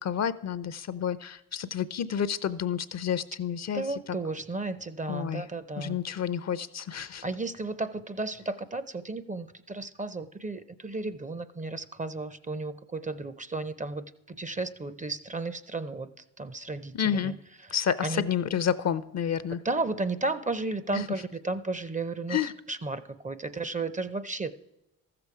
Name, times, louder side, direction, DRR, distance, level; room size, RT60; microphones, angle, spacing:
voice 1, 0.0-3.8 5.1-5.4 5.8-7.2 16.9-17.3 17.7-19.6 20.9-21.0 22.3-22.5, left 8 dB, 40° left, 16 dB, 0.5 m, -29 dB
voice 2, 3.7-6.0 7.2-17.3 17.6-17.7 18.0-18.2 19.6-24.5, right 3 dB, 20° right, 15 dB, 0.5 m, -34 dB
14.0 x 6.9 x 4.7 m, 0.92 s
supercardioid pair, 60°, 41 cm